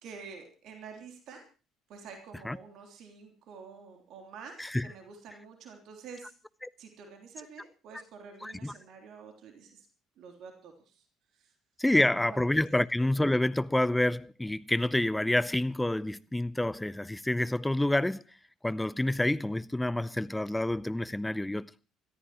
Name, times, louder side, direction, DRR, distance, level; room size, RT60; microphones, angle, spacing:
voice 1, 0.0-1.4 1.9-6.3 6.8-9.9 10.2-11.0 11.4-11.5, right 5 dB, 60° right, 3.3 m, -48 dB
voice 2, 4.6-4.9 8.4-8.7 11.8-18.2 18.6-21.7, left 1 dB, 10° left, 0.7 m, -28 dB
25.5 x 14.0 x 3.1 m
hypercardioid pair, 55°, 0 cm